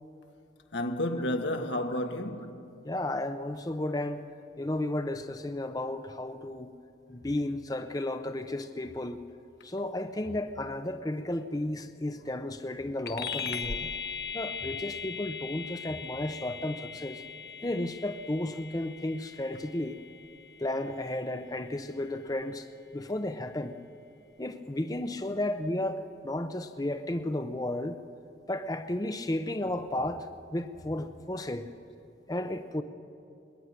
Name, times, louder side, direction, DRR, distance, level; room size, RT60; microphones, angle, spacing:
voice 1, 0.7-2.7, left 1 dB, 85° left, 1.6 m, -31 dB
voice 2, 2.8-4.3 4.6-6.7 7.1-9.2 9.6-13.9 14.3-17.2 17.6-20.0 20.6-22.7 22.9-23.8 24.4-28.0 28.5-31.7 32.3-32.8, left 1 dB, 20° left, 0.7 m, -33 dB
sound 1, 13.1-22.9, left 6 dB, 60° left, 1.1 m, -40 dB
22.0 x 20.0 x 9.5 m
head